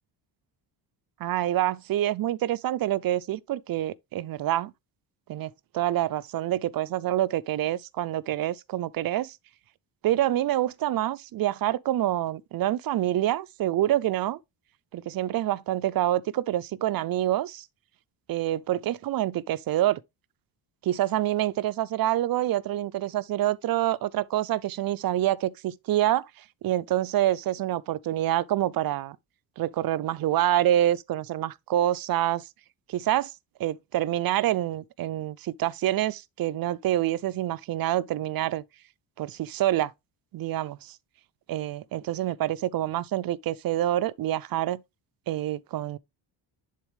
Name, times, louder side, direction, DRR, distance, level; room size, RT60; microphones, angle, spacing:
voice 1, 1.2-4.7 5.3-9.4 10.0-14.4 14.9-17.7 18.3-20.0 20.8-26.2 26.6-29.2 29.6-32.4 32.9-33.3 33.6-38.6 39.2-39.9 40.3-40.9 41.5-44.8 45.3-46.0, right 13 dB, 50° right, 0.5 m, -27 dB
10.5 x 4.0 x 3.2 m
cardioid pair, 145°, 45 cm